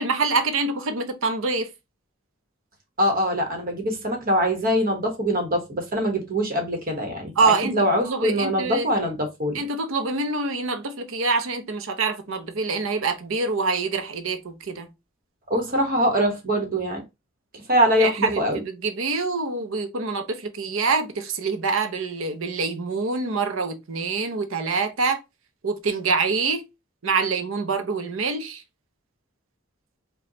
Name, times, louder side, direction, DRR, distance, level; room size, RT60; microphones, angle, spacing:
voice 1, 0.0-1.7 7.4-7.8 8.0-8.9 9.5-14.9 18.0-25.2 25.6-26.7 27.0-28.6, right 4 dB, 75° right, 0.7 m, -25 dB
voice 2, 3.0-9.6 15.5-17.0 17.7-18.6, equal, 45° right, 1.2 m, -23 dB
5.0 x 2.3 x 2.8 m
head